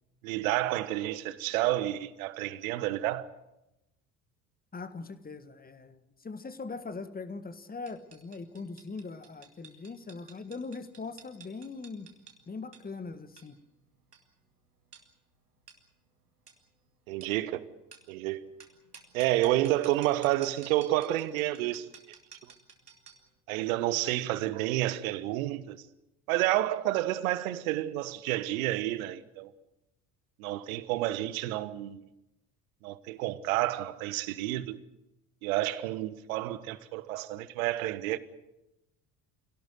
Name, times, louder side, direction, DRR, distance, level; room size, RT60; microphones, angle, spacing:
voice 1, 0.2-3.3 17.1-17.7 18.1-18.4 19.1-21.9 23.5-25.8 26.3-29.5 30.4-32.0 32.8-34.8 35.4-38.2, right 15 dB, 65° right, 1.3 m, -30 dB
voice 2, 4.7-12.1 12.5-13.6, left 4 dB, 20° left, 1.7 m, -41 dB
sound 1, 7.9-23.3, right 5 dB, 85° right, 2.2 m, -55 dB
26.0 x 17.5 x 8.0 m
figure-of-eight pair, 55°, 45 cm